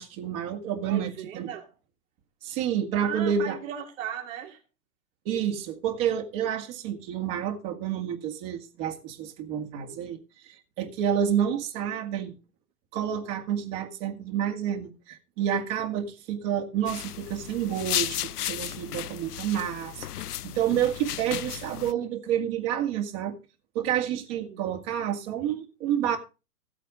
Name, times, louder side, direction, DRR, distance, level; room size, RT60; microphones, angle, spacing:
voice 1, 0.0-1.5 2.4-3.6 5.3-12.3 12.9-23.4 23.7-26.2, right 9 dB, 40° right, 2.1 m, -29 dB
voice 2, 0.8-1.7 3.0-4.6 24.4-24.6, right 9 dB, 60° right, 2.5 m, -37 dB
sound 1, 16.9-21.9, left 12 dB, 90° left, 0.6 m, -34 dB
15.0 x 8.5 x 3.8 m
hypercardioid pair, 125°, 44 cm